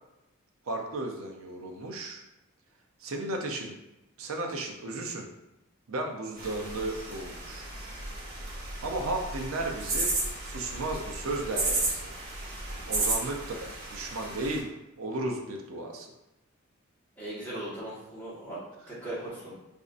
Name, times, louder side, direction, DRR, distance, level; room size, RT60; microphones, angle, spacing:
voice 1, 0.7-2.2 3.0-3.8 4.2-5.3 5.9-7.7 8.8-12.0 12.9-16.1, right 2 dB, 70° right, 2 dB, 0.6 m, -34 dB
sound 1, 6.4-14.6, right 2 dB, 45° right, 1.0 m, -34 dB
voice 2, 17.2-18.6 18.9-19.5, right 1 dB, 10° left, -9 dB, 1.3 m, -38 dB
4.2 x 2.6 x 2.5 m, 0.94 s
head